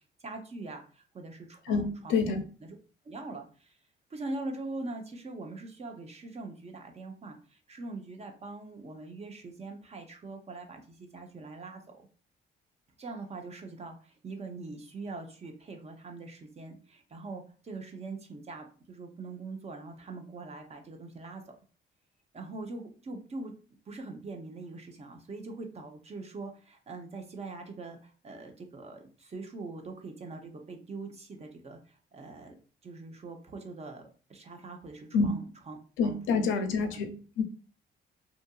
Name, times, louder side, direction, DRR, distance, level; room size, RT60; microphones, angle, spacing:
voice 1, 0.2-2.8 3.0-3.8 4.1-11.8 13.0-21.4 22.3-23.5 23.9-32.5 32.8-34.0 34.3-35.8 36.0-36.4 36.9-37.0, right 3 dB, 30° right, 4 dB, 0.6 m, -42 dB
voice 2, 1.7-2.4 35.1-35.3 36.0-37.4, left 5 dB, 85° left, 7 dB, 0.5 m, -27 dB
2.8 x 2.4 x 2.3 m, 0.38 s
cardioid pair, 90°, 20 cm